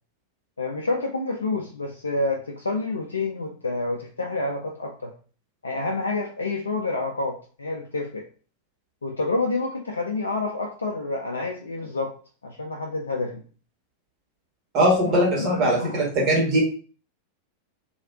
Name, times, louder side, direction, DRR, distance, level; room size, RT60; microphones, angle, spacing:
voice 1, 0.6-5.1 5.6-8.3 9.0-12.1 12.4-13.4 15.0-16.1, left 3 dB, 75° left, 1 dB, 0.4 m, -28 dB
voice 2, 14.7-16.6, right 1 dB, 35° right, -3 dB, 1.6 m, -21 dB
3.2 x 2.7 x 2.7 m, 0.40 s
figure-of-eight pair, 90°, 0 cm